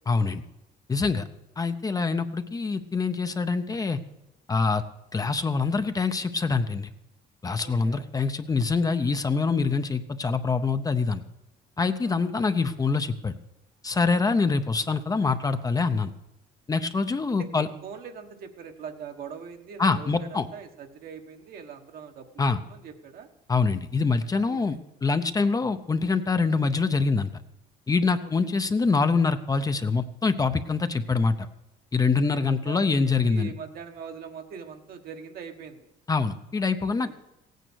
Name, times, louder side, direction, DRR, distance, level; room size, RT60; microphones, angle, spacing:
voice 1, 0.1-0.4 0.9-1.3 1.6-4.0 4.5-4.8 5.1-6.9 7.4-11.2 11.8-13.4 13.8-16.1 16.7-17.7 19.8-20.5 22.4-22.6 23.5-27.3 27.9-31.5 31.9-33.5 36.1-37.2, left 4 dB, 20° left, 9 dB, 0.7 m, -25 dB
voice 2, 7.6-8.1 12.0-12.1 14.1-14.2 17.3-23.3 24.4-24.8 28.2-28.3 32.1-35.9 37.0-37.2, right 7 dB, 60° right, 5 dB, 1.4 m, -42 dB
16.0 x 9.2 x 6.3 m, 0.91 s
cardioid pair, 110°, 17 cm